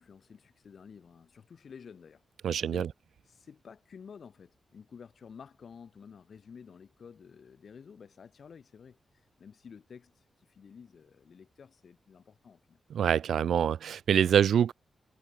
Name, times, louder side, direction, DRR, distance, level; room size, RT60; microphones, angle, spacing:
voice 1, 0.0-2.9 3.2-12.8, left 6 dB, 55° left, 4.8 m, -52 dB
voice 2, 2.4-2.9 12.9-14.7, right 8 dB, 90° right, 0.3 m, -25 dB
wide cardioid pair, 140°, 0 cm